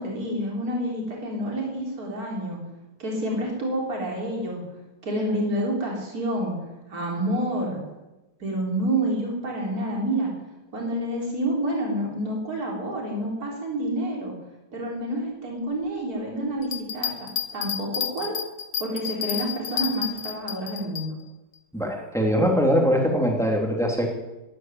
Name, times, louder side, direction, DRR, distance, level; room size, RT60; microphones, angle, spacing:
voice 1, 0.0-2.6 3.0-4.6 5.0-6.5 6.9-7.8 8.4-10.3 10.7-14.3 14.7-18.4 18.8-21.2, right 1 dB, 45° right, -2 dB, 4.2 m, -28 dB
Bell, 16.6-21.0 21.5-21.6, left 9 dB, 90° left, 1.8 m, -30 dB
voice 2, 21.7-24.1, equal, ahead, 0 dB, 2.9 m, -22 dB
13.5 x 11.0 x 9.4 m, 1.0 s
omnidirectional pair, 2.1 m